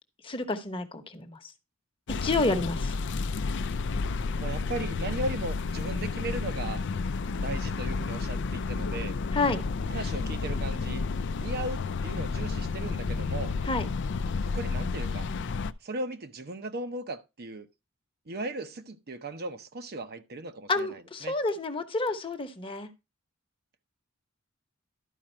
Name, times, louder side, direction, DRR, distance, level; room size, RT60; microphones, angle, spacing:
voice 1, 0.2-1.5 2.1-3.0 9.3-9.6 13.6-13.9 20.7-22.9, left 3 dB, 25° left, 1.0 m, -29 dB
sound 1, 2.1-15.7, left 4 dB, 60° left, 0.5 m, -31 dB
voice 2, 4.4-6.8 7.4-9.2 9.9-11.1 11.4-13.5 14.4-15.3 15.8-17.7 18.3-21.3, right 2 dB, 50° right, 0.8 m, -37 dB
12.0 x 5.0 x 4.4 m
head